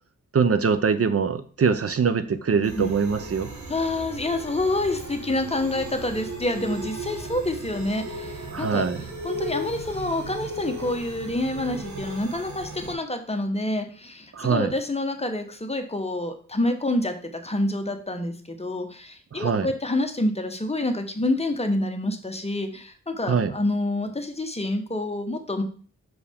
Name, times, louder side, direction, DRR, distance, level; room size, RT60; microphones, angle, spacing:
voice 1, 0.3-3.5 8.5-9.0 14.3-14.7 19.3-19.7 23.3-23.5, right 5 dB, 50° right, 11 dB, 0.6 m, -23 dB
sound 1, 2.6-12.9, right 2 dB, 75° right, 1.1 m, -36 dB
voice 2, 3.7-8.8 9.2-17.2 17.4-25.6, left 1 dB, 20° left, 5 dB, 0.9 m, -27 dB
6.2 x 4.7 x 3.5 m, 0.43 s
wide cardioid pair, 95°, 29 cm